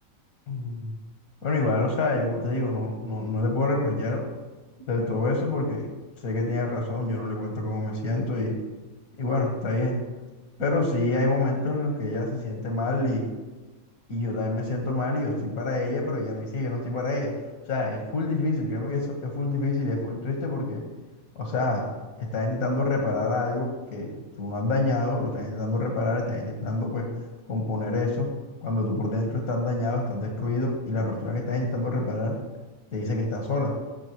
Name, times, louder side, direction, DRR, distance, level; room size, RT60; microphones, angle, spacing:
voice 1, 0.5-1.0 1.4-4.2 4.9-5.8 6.2-8.6 9.2-10.0 10.6-13.3 14.1-17.3 17.7-20.8 21.4-21.9 22.3-24.1 24.4-27.1 27.5-28.3 28.6-32.4 32.9-33.7, left 2 dB, 80° left, 0 dB, 1.9 m, -27 dB
16.5 x 7.5 x 3.1 m, 1.2 s
omnidirectional pair, 1.5 m